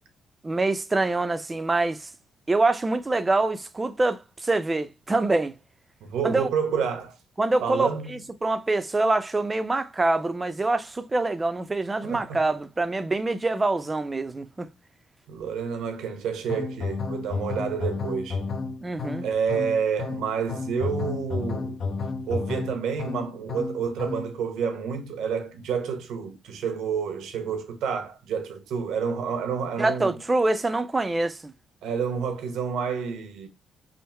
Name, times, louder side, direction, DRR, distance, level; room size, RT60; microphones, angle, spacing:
voice 1, 0.4-2.1 2.5-5.6 6.2-6.5 7.4-14.7 18.8-19.3 29.8-31.5, right 2 dB, 20° right, 0.4 m, -25 dB
voice 2, 6.0-7.2 7.6-8.1 12.0-12.5 15.3-18.4 19.2-21.8 22.3-30.2 31.8-33.5, right 6 dB, 80° right, 0.8 m, -29 dB
sound 1, 16.5-24.4, left 4 dB, 55° left, 0.5 m, -32 dB
3.5 x 2.0 x 4.2 m
cardioid pair, 90°, 0 cm